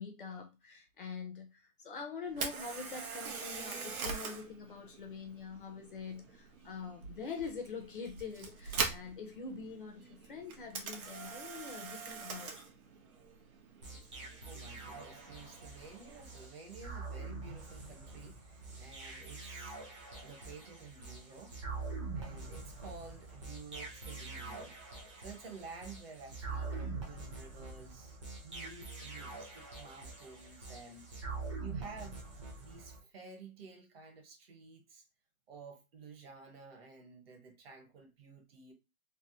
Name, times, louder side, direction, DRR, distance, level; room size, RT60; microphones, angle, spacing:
voice 1, 0.0-12.5 14.5-14.6, left 5 dB, 40° left, 0.5 m, -44 dB
Camera, 2.3-16.3, right 5 dB, 85° right, 1.1 m, -43 dB
sound 1, 13.8-33.0, right 3 dB, 25° right, 0.5 m, -45 dB
voice 2, 14.5-19.8 20.2-21.5 22.1-24.8 25.2-31.1 31.6-32.2 32.6-35.0 35.5-38.7, right 4 dB, 45° right, 0.9 m, -52 dB
3.3 x 2.0 x 2.7 m
hypercardioid pair, 165°, 42 cm